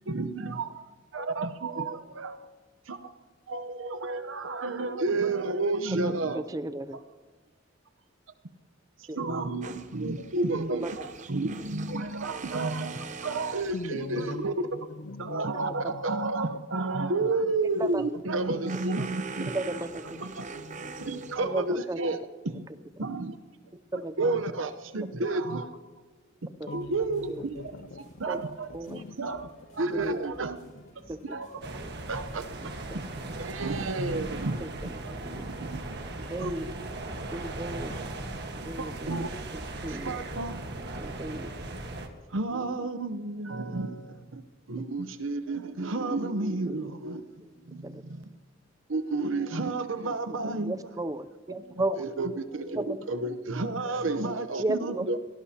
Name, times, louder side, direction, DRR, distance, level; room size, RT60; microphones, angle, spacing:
voice 1, 0.1-0.8 1.1-2.5 2.9-3.1 3.5-6.4 9.0-14.7 15.2-19.5 20.2-20.4 21.0-22.2 22.4-22.7 23.0-23.4 24.2-25.7 26.6-27.7 28.2-28.7 29.2-29.5 29.7-30.6 31.0-33.0 33.4-34.6 35.3-36.0 36.4-36.8 38.8-39.3 39.9-40.6 42.3-48.2 48.9-50.7 51.5-51.7 52.0-55.2, right 2 dB, 85° right, 11 dB, 0.9 m, -31 dB
voice 2, 5.9-7.0 9.1-9.2 10.8-10.9 15.5-15.9 17.8-18.0 19.5-20.2 21.4-22.0 23.9-24.1 26.6-26.7 27.3-27.5 28.3-28.4 28.7-29.0 29.9-30.2 31.1-31.2 31.8-31.9 34.3-35.5 36.2-36.7 37.3-37.9 38.6-39.1 39.8-40.1 41.0-41.5 46.7-46.9 47.8-48.0 50.3-52.0 52.8-53.0 54.6-55.0, right 2 dB, 20° right, 13 dB, 0.5 m, -34 dB
sound 1, 9.6-14.6 17.6-21.8, right 4 dB, 40° right, 0.8 m, -43 dB
voice 3, 13.7-16.8 17.2-17.3 20.1-21.6 26.6-28.0 28.3-29.5 29.8-30.1 30.7-30.9, left 3 dB, 65° left, 15 dB, 0.6 m, -43 dB
sound 2, 26.7-40.4, equal, 40° left, 6.3 m, -55 dB
sound 3, 31.6-42.1, right 2 dB, 60° right, 1.5 m, -38 dB
23.5 x 18.0 x 2.9 m, 1.4 s
head